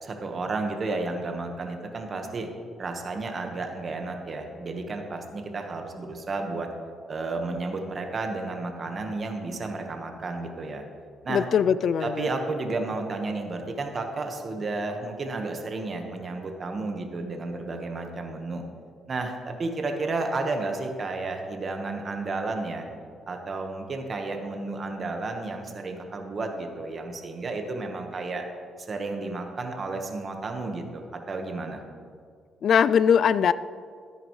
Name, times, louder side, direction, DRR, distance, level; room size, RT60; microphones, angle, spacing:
voice 1, 0.0-2.5 2.8-6.7 7.1-10.8 11.2-11.4 12.0-18.6 19.1-22.9 23.3-28.4 28.8-31.8, right 3 dB, 40° right, 4 dB, 1.4 m, -32 dB
voice 2, 11.3-12.3 32.6-33.5, left 7 dB, 60° left, 17 dB, 0.3 m, -21 dB
13.0 x 10.0 x 3.2 m, 2.2 s
cardioid pair, 90°, 0 cm